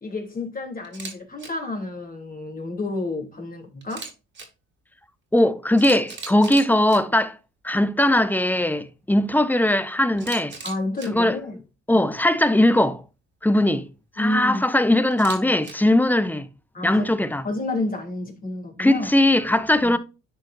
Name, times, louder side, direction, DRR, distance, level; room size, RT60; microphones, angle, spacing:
voice 1, 0.0-4.1 10.6-11.6 11.9-12.1 14.2-14.6 16.7-17.1 17.4-19.1 19.8-20.0, left 2 dB, 30° left, 3.0 m, -30 dB
Camera, 0.8-1.1 1.4-1.5 3.8-4.5 5.4-5.5 5.8-7.0 10.2-11.1 15.1-15.7, right 4 dB, 35° right, 2.0 m, -37 dB
voice 2, 5.3-7.4 7.6-10.6 11.1-11.4 11.9-13.0 13.4-13.9 14.2-16.5 16.8-17.4 18.8-20.0, left 1 dB, 5° left, 0.6 m, -20 dB
10.5 x 4.3 x 2.5 m
cardioid pair, 90°, 30 cm